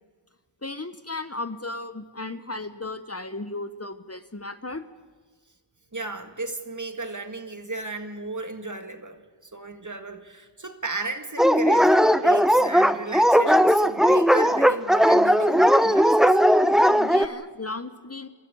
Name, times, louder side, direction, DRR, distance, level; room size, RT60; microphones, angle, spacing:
voice 1, 0.6-4.9 16.9-18.3, left 2 dB, 35° left, 11 dB, 1.0 m, -35 dB
voice 2, 5.9-16.4, right 2 dB, 40° right, 7 dB, 2.0 m, -34 dB
Dog, 11.4-17.3, equal, ahead, 0.8 m, -18 dB
28.0 x 14.0 x 8.4 m, 1.5 s
wide cardioid pair, 45°, 44 cm